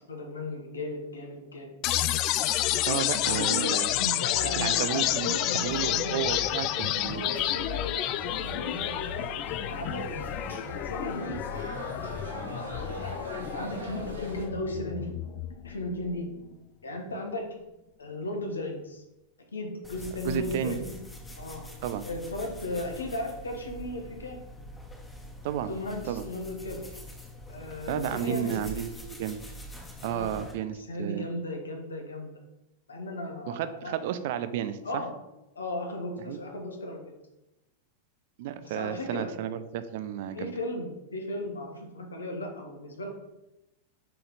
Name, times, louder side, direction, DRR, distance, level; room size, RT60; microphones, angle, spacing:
voice 1, 0.1-1.8 3.2-6.2 7.0-9.0 9.7-10.1 10.3-10.5 10.8-11.4 12.3-15.1 15.6-16.3 16.8-17.5 18.0-19.0 19.5-20.9 21.3-21.6 22.0-24.4 25.7-26.8 27.5-28.6 30.0-32.3 32.9-33.9 34.8-35.1 35.5-37.1 38.6-39.3 40.3-43.1, left 1 dB, 75° left, 3 dB, 1.2 m, -36 dB
sound 1, 1.8-15.8, left 13 dB, 40° left, 0.3 m, -30 dB
voice 2, 2.9-3.9 4.6-5.3 5.5-7.2 20.2-20.8 21.8-22.0 25.4-25.7 26.0-26.2 27.9-29.4 30.0-31.3 33.5-35.0 36.3-36.4 38.4-40.5, right 10 dB, 50° right, 12 dB, 0.5 m, -32 dB
sound 2, 4.3-14.5, right 1 dB, 80° right, 1.7 m, -41 dB
sound 3, 19.8-30.5, equal, 15° left, 1.4 m, -44 dB
6.4 x 4.2 x 4.0 m, 0.96 s
figure-of-eight pair, 90°, 0 cm